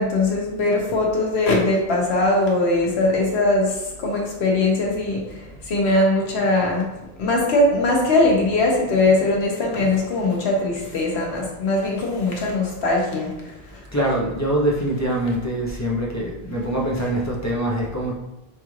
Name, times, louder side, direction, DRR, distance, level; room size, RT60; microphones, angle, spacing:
voice 1, 0.0-6.9 7.2-13.8, left 2 dB, 90° left, -1 dB, 1.2 m, -21 dB
voice 2, 13.9-18.1, right 1 dB, 25° left, -3 dB, 0.4 m, -24 dB
5.4 x 2.4 x 3.1 m, 0.95 s
omnidirectional pair, 1.1 m